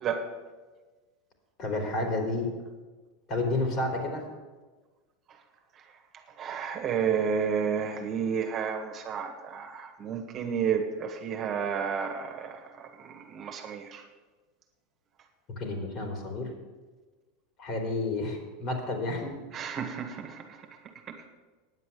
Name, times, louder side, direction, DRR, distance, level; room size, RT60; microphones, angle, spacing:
voice 1, 1.6-2.5 3.3-4.2 15.5-16.5 17.6-19.3, left 2 dB, 45° left, 3 dB, 3.5 m, -30 dB
voice 2, 6.4-14.0 19.5-20.4, right 7 dB, 35° right, 4 dB, 1.6 m, -31 dB
9.7 x 7.7 x 8.5 m, 1.3 s
hypercardioid pair, 110°, 0 cm